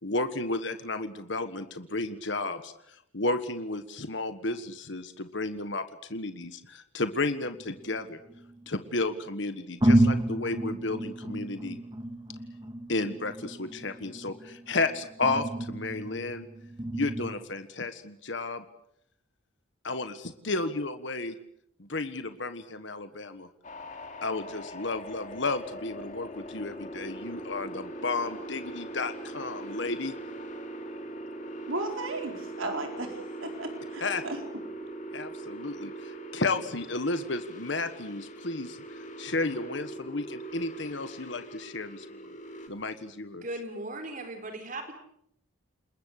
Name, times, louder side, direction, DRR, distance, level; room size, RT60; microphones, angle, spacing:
voice 1, 0.0-2.7 3.1-5.8 6.1-8.2 8.7-11.8 12.9-16.5 16.9-18.6 19.8-21.3 21.8-23.5 24.2-30.1 34.0-34.2 35.1-42.4 42.7-43.5, left 3 dB, 60° left, 10 dB, 1.5 m, -32 dB
sound 1, 7.4-8.7 9.3-9.4 9.8-17.3, right 1 dB, 20° right, 1.9 m, -30 dB
sound 2, 23.6-42.7, right 1 dB, 40° left, 2.9 m, -41 dB
voice 2, 31.7-34.4, right 2 dB, 80° right, 4 dB, 4.4 m, -35 dB
voice 3, 43.4-44.9, right 2 dB, 40° right, 6 dB, 4.1 m, -37 dB
29.5 x 20.5 x 6.6 m, 0.71 s
head